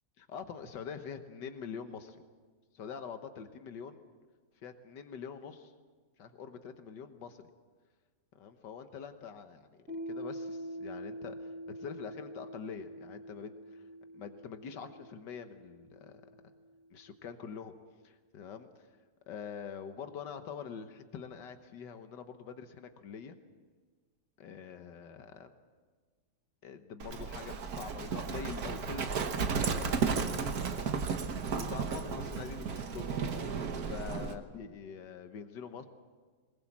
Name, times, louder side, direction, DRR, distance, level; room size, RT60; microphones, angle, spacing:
voice 1, 0.2-2.2 2.7-4.0 4.6-5.7 6.2-7.5 8.3-13.8 14.1-16.2 16.9-17.7 18.0-18.7 19.3-23.4 24.4-25.5 26.6-31.2 31.5-33.1 33.8-35.9, left 6 dB, 85° left, 8 dB, 1.8 m, -45 dB
Piano, 9.9-17.1, equal, 45° right, 7.1 m, -45 dB
Livestock farm animals working animals, 27.0-34.4, right 5 dB, 60° right, 1.7 m, -34 dB
22.0 x 20.0 x 7.4 m, 1.5 s
omnidirectional pair, 1.8 m